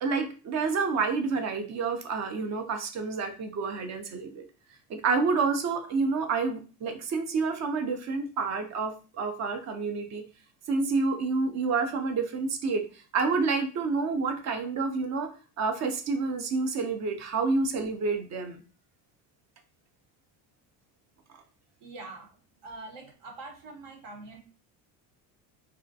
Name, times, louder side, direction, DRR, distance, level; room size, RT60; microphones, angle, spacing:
voice 1, 0.0-4.5 4.9-10.2 10.7-12.8 13.1-18.6, right 4 dB, 40° right, 6 dB, 0.5 m, -29 dB
voice 2, 21.8-22.3 22.6-24.4, right 3 dB, 65° right, 2 dB, 0.9 m, -44 dB
2.4 x 2.1 x 2.6 m, 0.35 s
supercardioid pair, 95°, 45 cm